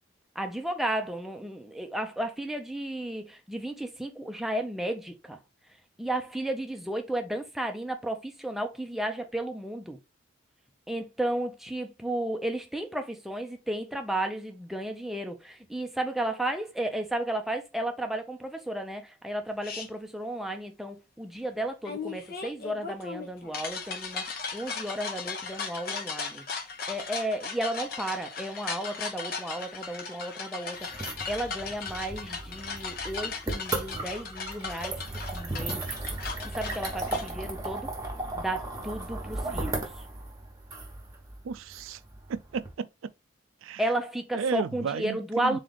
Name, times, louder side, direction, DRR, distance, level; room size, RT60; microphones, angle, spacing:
voice 1, 0.4-5.4 6.0-10.0 10.9-26.4 26.9-35.8 36.5-37.9 38.3-39.8 43.8-45.6, right 1 dB, ahead, 0.5 m, -33 dB
sound 1, 19.6-19.9 21.8-37.3, left 5 dB, 45° left, 0.8 m, -37 dB
sound 2, 30.8-42.7, right 2 dB, 15° right, 1.1 m, -36 dB
voice 2, 41.4-42.0 42.3-43.1 43.6-43.8 44.3-45.6, right 6 dB, 75° right, 0.4 m, -33 dB
4.0 x 3.3 x 3.8 m
head